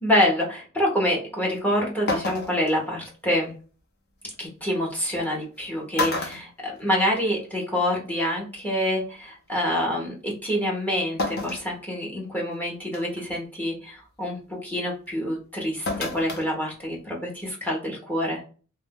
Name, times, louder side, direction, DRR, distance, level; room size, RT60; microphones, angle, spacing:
voice 1, 0.0-3.5 4.4-18.4, left 1 dB, 10° left, -2 dB, 0.9 m, -26 dB
sound 1, 1.5-1.6 2.1-2.7 4.3-4.4 5.4-5.6 5.9-7.3 7.7-7.8 9.0-9.1 11.2-11.7 12.2-12.3 12.9-13.2 15.9-16.5 16.8-16.9, left 2 dB, 50° left, 0.7 m, -29 dB
2.5 x 2.2 x 3.5 m, 0.38 s
head